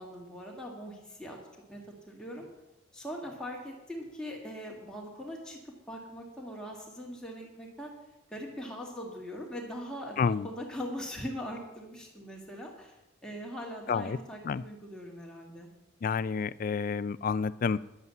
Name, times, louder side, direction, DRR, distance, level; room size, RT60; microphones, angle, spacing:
voice 1, 0.0-1.4 1.7-2.5 2.9-7.9 8.3-12.9 13.2-15.7, equal, 5° left, -2 dB, 2.2 m, -41 dB
voice 2, 10.2-10.5 13.9-14.2 14.5-14.6 16.0-17.8, left 5 dB, 45° left, 17 dB, 0.3 m, -29 dB
11.0 x 8.2 x 7.1 m, 0.98 s
head